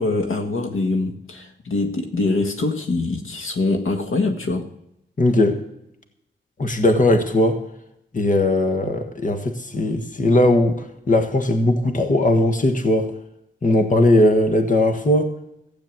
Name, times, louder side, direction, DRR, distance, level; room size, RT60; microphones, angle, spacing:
voice 1, 0.0-4.6, left 3 dB, 85° left, 5 dB, 1.6 m, -23 dB
voice 2, 5.2-5.6 6.6-7.6 8.1-13.1 13.6-15.3, left 1 dB, 40° left, 5 dB, 1.4 m, -18 dB
15.5 x 8.7 x 7.4 m, 0.81 s
wide cardioid pair, 120°, 20 cm